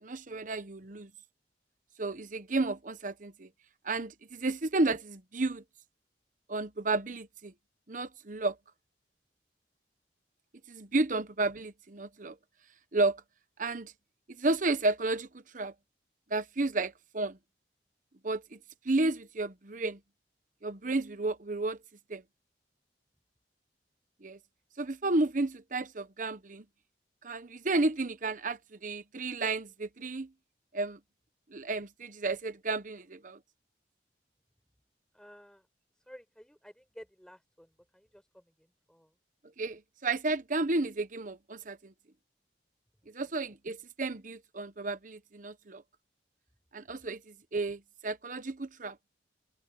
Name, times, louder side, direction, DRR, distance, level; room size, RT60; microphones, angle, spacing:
voice 1, 0.0-1.1 2.0-3.5 3.8-5.6 6.5-7.5 7.9-8.6 10.7-12.4 12.9-13.2 13.6-13.9 14.3-15.7 16.3-17.4 18.2-18.6 18.8-20.0 20.6-21.8 22.1-22.2 24.2-24.4 24.8-26.6 27.2-30.3 30.7-31.0 31.5-33.4 39.6-41.9 43.1-45.8 46.7-49.0, right 2 dB, 50° right, 1.0 m, -32 dB
voice 2, 35.1-35.7 35.9-39.1 43.0-43.1, equal, 5° left, 6.4 m, -54 dB
open air
head